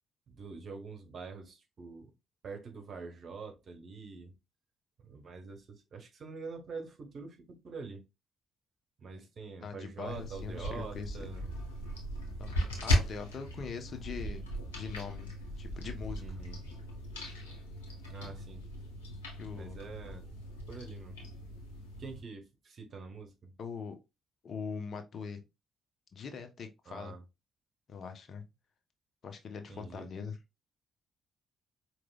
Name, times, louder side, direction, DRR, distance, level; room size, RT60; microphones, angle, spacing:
voice 1, 0.3-2.1 2.4-4.4 5.0-7.4 7.6-8.0 9.0-11.5 12.5-12.7 16.2-16.6 18.1-18.7 19.5-20.4 20.7-21.2 22.0-23.5 26.9-27.2 29.7-30.1, right 4 dB, 50° right, 1.2 m, -45 dB
voice 2, 9.6-11.2 12.4-14.4 14.7-16.2 19.4-19.8 23.6-24.0 24.4-25.4 26.1-27.1 27.9-28.4 29.2-30.4, left 6 dB, 50° left, 0.8 m, -42 dB
sound 1, 10.1-22.2, equal, 85° left, 1.1 m, -37 dB
4.8 x 3.1 x 2.3 m
figure-of-eight pair, 45°, 0 cm